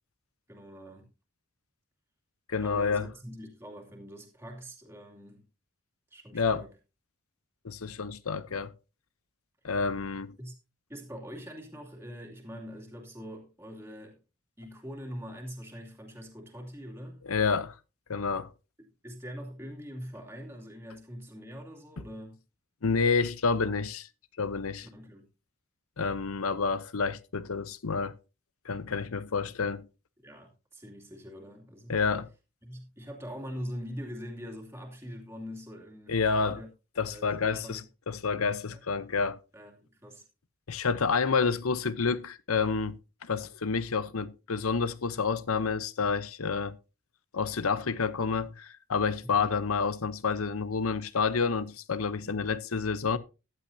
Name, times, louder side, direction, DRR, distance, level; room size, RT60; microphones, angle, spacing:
voice 1, 0.5-1.1 2.6-5.4 6.1-6.7 10.4-10.5 10.9-14.2 14.6-17.2 19.0-22.4 24.9-25.2 30.2-32.0 32.6-36.7 37.1-37.8 38.7-38.8 39.5-40.2 49.2-49.5 52.2-52.5, equal, 10° right, 2.6 m, -43 dB
voice 2, 2.5-3.1 6.3-6.7 7.6-8.7 9.6-10.4 17.2-17.8 18.1-18.5 22.8-24.1 24.4-24.9 26.0-28.2 28.6-29.9 31.9-32.3 36.1-36.6 37.0-39.4 40.7-46.8 47.3-53.2, left 5 dB, 85° left, 0.8 m, -29 dB
14.5 x 11.5 x 2.7 m
head